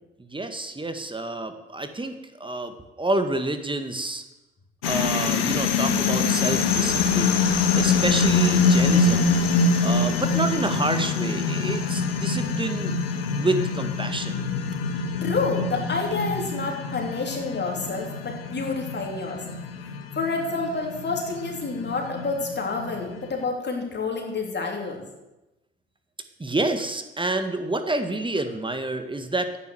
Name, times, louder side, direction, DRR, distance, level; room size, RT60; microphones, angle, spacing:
voice 1, 0.2-4.2 4.8-7.4 7.7-9.3 9.8-12.9 13.4-14.5 26.4-29.5, right 2 dB, 15° right, 8 dB, 1.7 m, -28 dB
sound 1, 4.8-23.3, left 4 dB, 85° left, 1.3 m, -24 dB
voice 2, 15.2-19.4 19.8-25.1, left 4 dB, 35° left, 1 dB, 3.3 m, -29 dB
11.0 x 9.4 x 7.9 m, 1.0 s
hypercardioid pair, 55°, 29 cm